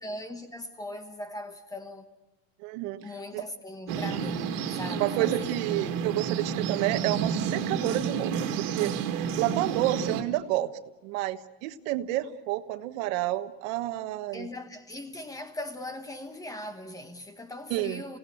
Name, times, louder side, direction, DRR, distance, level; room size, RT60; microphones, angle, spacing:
voice 1, 0.0-2.1 3.0-5.7 14.3-18.2, left 1 dB, 10° left, 1.2 m, -39 dB
voice 2, 2.6-3.1 3.3-3.4 5.0-10.7 11.0-14.5 17.7-18.0, right 15 dB, 85° right, 1.4 m, -30 dB
sound 1, 3.9-10.2, right 7 dB, 55° right, 2.3 m, -30 dB
29.5 x 17.5 x 8.5 m
cardioid pair, 175°, 39 cm